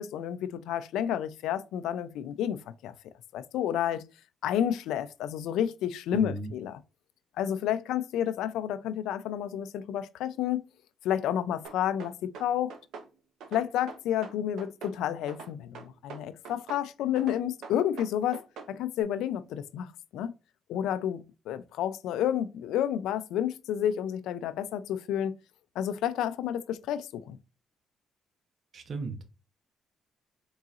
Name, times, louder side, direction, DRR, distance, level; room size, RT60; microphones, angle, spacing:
voice 1, 0.0-2.9 3.3-4.0 4.4-6.8 7.4-10.6 11.0-12.7 13.5-20.3 20.7-25.3 25.8-27.4, left 10 dB, 90° left, 0.4 m, -30 dB
voice 2, 6.1-6.5 28.7-29.2, right 3 dB, 55° right, 0.9 m, -35 dB
sound 1, 11.6-13.1 13.4-15.0 15.3-16.9 17.2-18.7, right 5 dB, 80° right, 0.8 m, -44 dB
3.9 x 3.8 x 2.4 m
cardioid pair, 90°, 0 cm